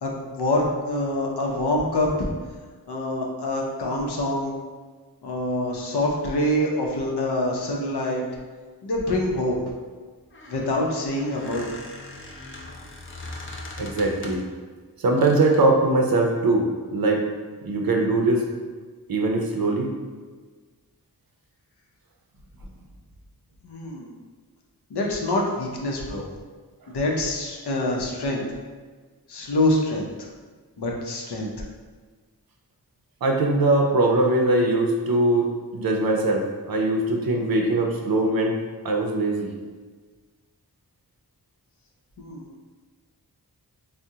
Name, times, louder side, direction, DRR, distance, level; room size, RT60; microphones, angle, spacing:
voice 1, 0.0-2.3 2.9-4.5 5.2-8.2 8.8-9.6 10.5-11.7 23.6-24.1 24.9-26.3 26.9-28.4 29.3-30.1 30.8-31.5 42.2-42.5, left 1 dB, 85° left, -1 dB, 0.6 m, -25 dB
Squeak, 10.2-14.6 15.2-15.7, left 2 dB, 35° left, 0.5 m, -40 dB
voice 2, 13.8-14.4 15.0-16.6 16.9-17.2 17.6-18.4 19.1-19.9 33.2-35.5 35.7-38.6 38.8-39.5, right 2 dB, 65° right, 1 dB, 0.5 m, -21 dB
3.5 x 2.1 x 2.7 m, 1.4 s
wide cardioid pair, 70°, 38 cm